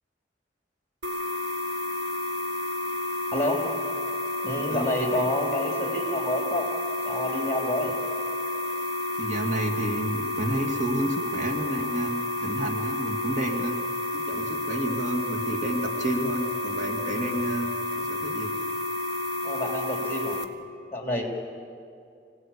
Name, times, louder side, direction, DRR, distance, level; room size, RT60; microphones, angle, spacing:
sound 1, 1.0-20.4, left 2 dB, 75° right, 1.7 m, -30 dB
voice 1, 3.3-3.8 4.4-6.7 7.0-7.9 19.4-20.4 20.9-21.2, left 1 dB, 15° left, 1 dB, 3.0 m, -28 dB
voice 2, 9.2-12.1 12.4-13.8 14.1-18.6, right 1 dB, 45° right, 2 dB, 2.1 m, -30 dB
25.0 x 18.0 x 8.5 m, 2.4 s
head